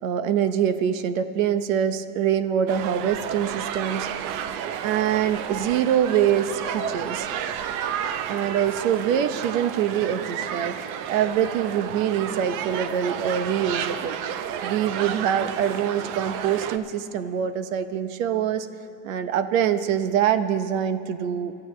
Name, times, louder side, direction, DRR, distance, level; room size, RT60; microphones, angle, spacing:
voice 1, 0.0-4.1 4.8-7.3 8.3-14.2 14.6-18.7 19.0-21.5, right 9 dB, 85° right, 11 dB, 0.9 m, -24 dB
sound 1, 2.7-16.8, right 9 dB, 50° right, 0.7 m, -31 dB
26.0 x 12.5 x 3.2 m, 2.6 s
supercardioid pair, 145°, 39 cm